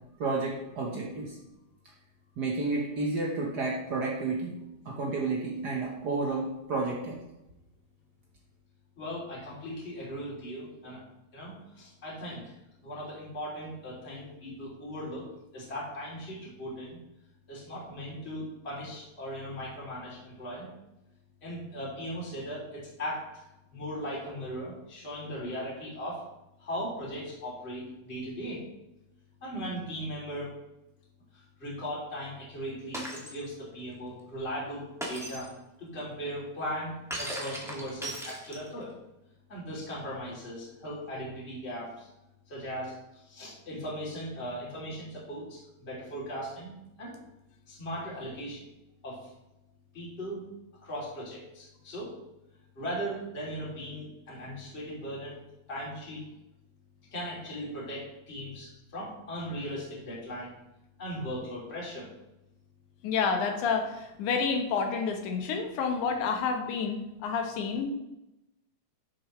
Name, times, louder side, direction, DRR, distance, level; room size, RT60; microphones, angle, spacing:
voice 1, 0.2-1.4 2.4-4.6 4.8-7.2, right 3 dB, 80° right, -2 dB, 0.9 m, -31 dB
voice 2, 9.0-11.0 11.3-12.5 12.8-17.0 17.5-20.7 21.4-23.4 23.7-26.2 26.6-28.7 29.4-30.5 31.3-35.5 35.8-38.9 39.5-42.1 42.5-47.2 47.7-48.7 49.0-49.3 49.9-50.4 50.8-52.1 52.7-55.4 55.7-56.2 57.1-60.5 61.0-62.1, equal, 20° left, -6 dB, 2.8 m, -38 dB
Shatter, 32.9-33.4 35.0-35.5 37.1-38.8, right 1 dB, ahead, 1.0 m, -37 dB
voice 3, 63.0-67.9, left 5 dB, 85° left, 4 dB, 2.6 m, -29 dB
12.0 x 6.8 x 3.1 m, 0.94 s
omnidirectional pair, 3.4 m